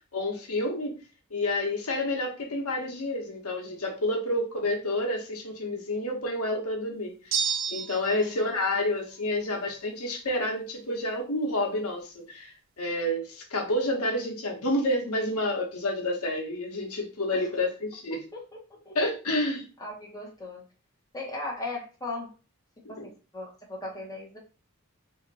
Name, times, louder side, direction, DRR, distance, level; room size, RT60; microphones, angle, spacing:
voice 1, 0.1-1.0 1.3-7.2 7.7-18.2 18.9-19.6 22.8-23.1, left 1 dB, 85° left, 1.0 m, -29 dB
sound 1, 7.3-8.3, right 7 dB, 60° right, 0.4 m, -29 dB
voice 2, 18.3-19.0 19.8-20.6 21.1-22.3 22.9-24.4, left 2 dB, 15° left, 1.1 m, -38 dB
2.8 x 2.5 x 4.0 m
head